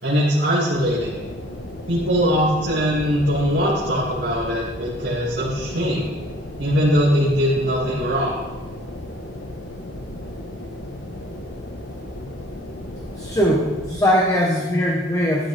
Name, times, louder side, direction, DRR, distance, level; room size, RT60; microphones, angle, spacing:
voice 1, 0.0-1.1 1.9-6.1 6.6-8.3, equal, 75° right, -7 dB, 2.4 m, -21 dB
sound 1, 0.7-13.9, left 1 dB, 85° left, 1.4 m, -35 dB
voice 2, 13.1-15.5, equal, 20° left, -2 dB, 1.2 m, -20 dB
12.0 x 10.5 x 3.5 m, 1.3 s
head